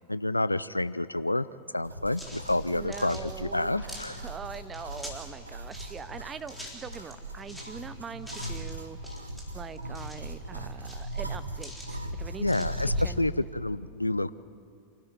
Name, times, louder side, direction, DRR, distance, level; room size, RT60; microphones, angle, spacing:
voice 1, 0.1-1.5 1.7-4.2 12.4-14.3, left 2 dB, 85° left, 17 dB, 0.5 m, -29 dB
sound 1, 1.8-13.2, right 1 dB, 85° right, 1.3 m, -38 dB
sound 2, 2.2-5.3 5.7-7.7 8.2-8.7 9.0-10.3 10.7-12.0 12.5-13.1, equal, ahead, 4.0 m, -46 dB
voice 2, 2.6-9.0 9.5-12.7 13.0-13.5, right 6 dB, 20° right, 13 dB, 0.8 m, -42 dB
27.5 x 13.5 x 9.7 m, 2.6 s
figure-of-eight pair, 90°, 0 cm